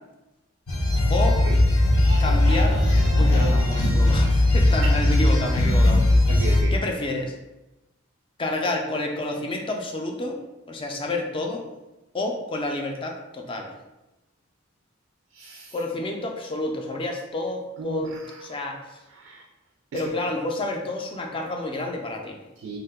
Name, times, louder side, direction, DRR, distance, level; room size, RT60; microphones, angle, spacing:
sound 1, 0.7-6.6, left 1 dB, 90° left, 0.8 m, -19 dB
voice 1, 1.1-1.4 2.2-2.8 3.2-6.0 6.7-7.4 8.4-10.4 10.7-11.6 12.1-13.7 15.7-19.0 19.9-22.4, left 2 dB, 25° left, 2 dB, 0.3 m, -29 dB
voice 2, 6.3-6.7 15.3-15.7 17.8-18.4 19.1-19.4 19.9-20.1 22.6-22.8, right 4 dB, 75° right, 1 dB, 0.3 m, -35 dB
2.7 x 2.2 x 3.4 m, 1.0 s
head